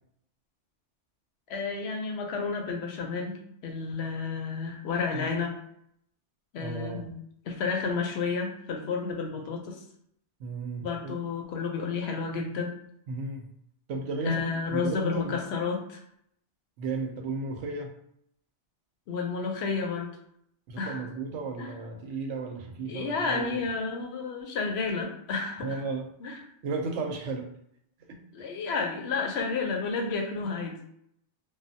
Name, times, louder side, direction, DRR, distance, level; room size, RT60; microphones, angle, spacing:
voice 1, 1.5-5.5 6.5-7.2 7.4-9.8 10.8-12.7 14.2-16.0 19.1-20.1 20.8-21.1 21.6-21.7 22.9-25.8 26.2-26.4 28.3-30.9, left 4 dB, 70° left, 3 dB, 0.8 m, -31 dB
voice 2, 6.6-7.1 10.4-11.2 13.1-13.5 13.9-14.4 14.7-15.4 16.8-17.9 20.7-23.6 25.6-26.1 26.6-27.5 28.1-28.2 30.4-30.5, right 3 dB, 85° right, 4 dB, 0.9 m, -34 dB
3.1 x 2.2 x 2.7 m, 0.72 s
omnidirectional pair, 1.2 m